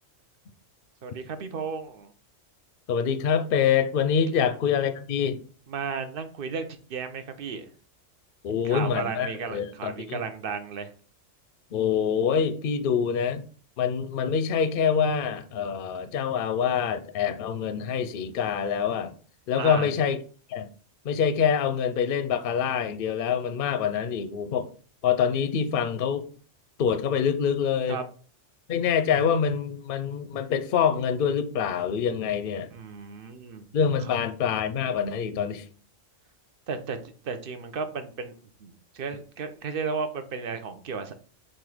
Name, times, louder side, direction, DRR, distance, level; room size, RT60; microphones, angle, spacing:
voice 1, 1.0-2.1 4.3-4.4 5.7-7.7 8.6-10.9 19.6-19.9 27.9-28.0 32.7-33.6 34.0-34.1 36.7-37.0 37.2-38.3 38.6-41.2, right 5 dB, 50° right, 0.9 m, -34 dB
voice 2, 2.9-5.4 8.4-10.2 11.7-13.4 13.8-19.1 19.5-20.2 20.5-20.7 21.0-24.7 25.0-26.3 26.8-28.0 28.7-32.7 33.7-35.7, left 7 dB, 55° left, 0.7 m, -25 dB
7.5 x 2.6 x 4.9 m
omnidirectional pair, 1.3 m